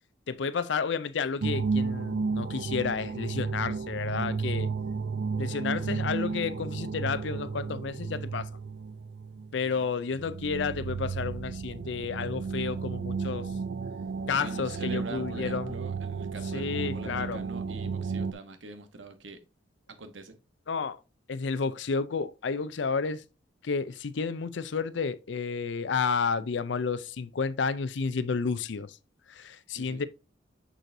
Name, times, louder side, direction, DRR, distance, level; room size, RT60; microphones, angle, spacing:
voice 1, 0.3-4.7 5.4-8.5 9.5-13.5 14.3-15.8 16.5-17.4 20.7-21.0 21.3-23.2 23.6-29.0 29.3-30.1, left 5 dB, 70° left, 0.5 m, -31 dB
sound 1, 1.4-9.8 10.1-18.3, right 5 dB, 60° right, 0.4 m, -33 dB
voice 2, 14.3-19.4 20.0-20.4 29.7-30.0, right 3 dB, 85° right, 1.1 m, -44 dB
6.5 x 6.2 x 2.6 m
head